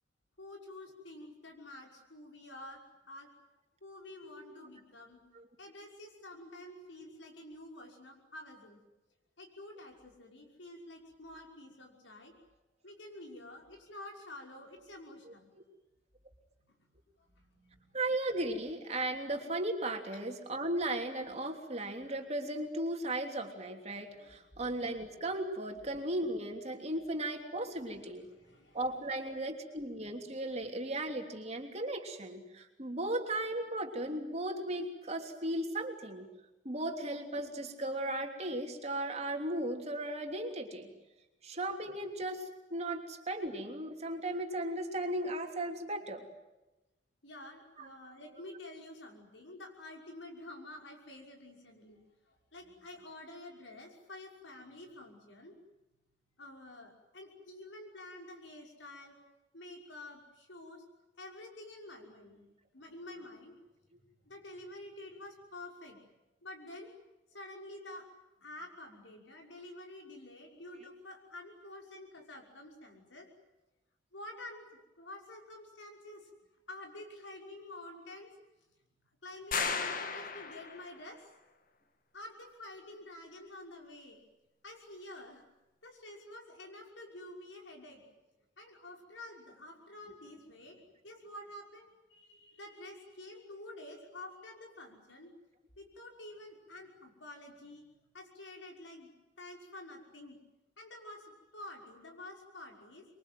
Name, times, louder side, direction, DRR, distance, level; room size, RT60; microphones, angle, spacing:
voice 1, 0.4-2.8 3.1-3.3 3.8-5.2 5.6-8.8 9.4-12.3 12.8-15.5 16.6-16.8 17.2-18.0 24.2-24.6 28.2-28.8 47.2-52.0 52.3-55.6 56.4-59.2 59.5-60.8 61.2-62.5 62.7-63.6 64.0-66.0 66.4-66.9 67.3-68.1 68.4-73.3 74.1-76.3 76.7-78.3 79.2-81.2 82.1-84.2 84.6-85.4 85.8-88.0 88.6-95.3 95.8-97.8 98.1-99.1 99.4-100.4 100.8-103.1, left 1 dB, 85° left, 1 dB, 5.9 m, -49 dB
voice 2, 4.2-4.6 5.3-5.5 15.2-15.3 17.9-28.3 28.7-36.3 36.6-40.9 41.4-46.2 47.8-47.9, right 1 dB, 35° right, 3 dB, 3.2 m, -36 dB
sound 1, 79.5-81.0, left 5 dB, 50° left, 1.9 m, -35 dB
26.5 x 23.0 x 9.3 m, 1.0 s
head